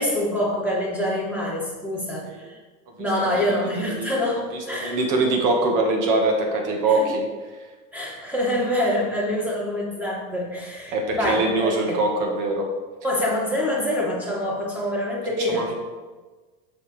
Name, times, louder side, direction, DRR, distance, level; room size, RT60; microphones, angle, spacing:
voice 1, 0.0-2.6 3.0-5.0 6.9-7.1 7.9-11.5 11.8-12.0 13.0-15.7, left 1 dB, 5° right, -4 dB, 2.1 m, -25 dB
voice 2, 3.2-3.5 4.0-4.1 4.7-7.2 10.9-12.6 15.5-15.7, right 2 dB, 55° right, 1 dB, 1.8 m, -23 dB
7.0 x 6.1 x 3.4 m, 1.3 s
supercardioid pair, 120°, 37 cm